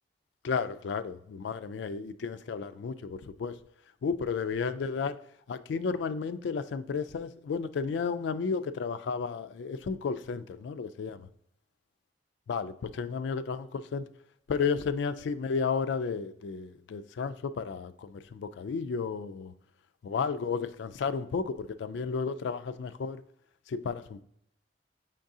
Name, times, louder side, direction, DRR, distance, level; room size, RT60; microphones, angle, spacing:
voice 1, 0.4-3.5 4.0-5.2 5.5-11.3 12.5-14.1 14.5-19.5 20.0-23.2 23.7-24.2, left 5 dB, 75° left, 0.3 m, -33 dB
5.3 x 3.7 x 2.7 m
head